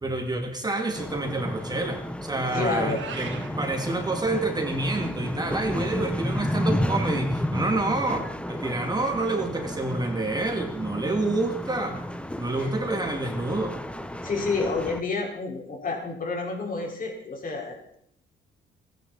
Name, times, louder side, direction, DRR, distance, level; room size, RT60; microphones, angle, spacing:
voice 1, 0.0-12.0 12.4-13.8, right 2 dB, 20° right, 3 dB, 2.5 m, -28 dB
sound 1, 0.9-15.0, left 1 dB, 5° left, 1.1 m, -32 dB
voice 2, 2.5-3.0 12.6-12.7 14.2-18.0, left 3 dB, 45° left, 1 dB, 4.8 m, -29 dB
Meow, 2.7-3.5, right 7 dB, 70° right, 2.6 m, -38 dB
29.0 x 10.0 x 4.2 m, 0.68 s
cardioid pair, 90°, 20 cm